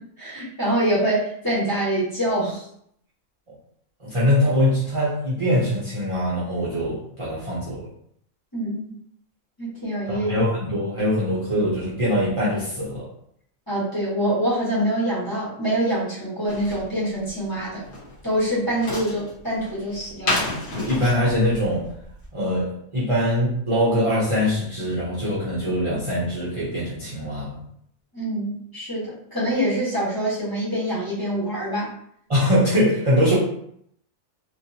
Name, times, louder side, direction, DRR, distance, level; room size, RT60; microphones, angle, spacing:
voice 1, 0.2-2.6 8.5-9.0 9.6-10.3 13.7-17.8 18.2-20.4 28.1-31.9, right 1 dB, 15° left, -10 dB, 1.3 m, -25 dB
voice 2, 4.0-7.8 10.1-13.1 20.7-21.9 22.3-27.6 32.3-33.4, equal, 30° right, -8 dB, 0.6 m, -22 dB
sound 1, 16.5-22.3, left 2 dB, 45° left, 1.0 m, -31 dB
3.0 x 2.6 x 2.7 m, 0.70 s
omnidirectional pair, 1.4 m